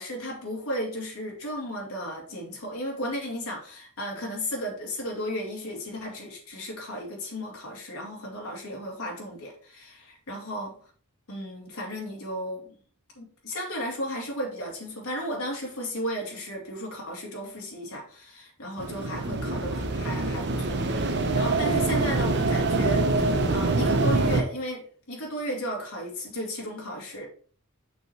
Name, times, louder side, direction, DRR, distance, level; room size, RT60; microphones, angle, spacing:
voice 1, 0.0-10.7 11.3-12.7 13.2-27.3, equal, 70° left, -1 dB, 2.7 m, -34 dB
sound 1, 18.8-24.4, right 2 dB, 50° right, 0.9 m, -25 dB
6.4 x 5.6 x 4.4 m, 0.44 s
head